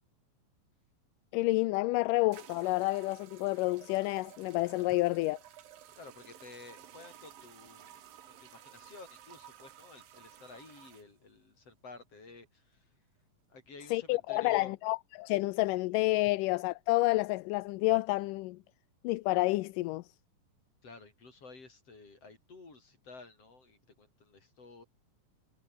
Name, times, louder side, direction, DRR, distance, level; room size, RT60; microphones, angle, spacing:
voice 1, 1.3-5.4 13.9-18.6 19.0-20.1, left 20 dB, 80° left, 2.2 m, -29 dB
sound 1, 1.5-1.6 2.3-11.1, right 11 dB, 80° right, 3.6 m, -54 dB
voice 2, 6.0-7.9 8.4-12.8 13.5-14.7 20.8-24.8, left 3 dB, 45° left, 7.2 m, -52 dB
omnidirectional pair, 4.0 m